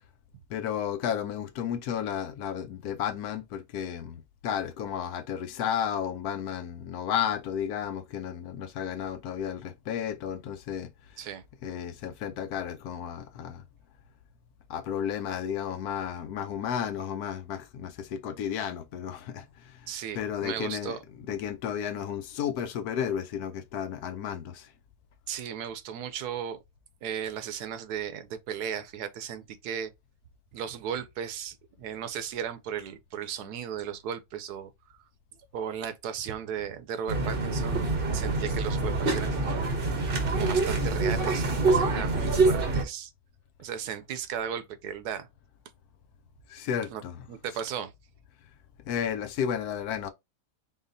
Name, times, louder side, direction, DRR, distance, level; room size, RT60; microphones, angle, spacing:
voice 1, 0.5-11.3 11.6-13.6 14.7-24.7 46.5-47.6 48.9-50.1, left 8 dB, 75° left, 1.1 m, -33 dB
voice 2, 19.9-21.0 25.3-26.6 27.0-29.9 30.5-35.0 35.5-37.9 38.1-39.7 40.0-43.1 43.6-45.3 46.9-47.0 47.3-47.9, right 8 dB, 80° right, 1.2 m, -36 dB
sound 1, 37.1-42.8, right 3 dB, 45° right, 0.9 m, -26 dB
4.0 x 3.7 x 2.6 m
omnidirectional pair, 1.7 m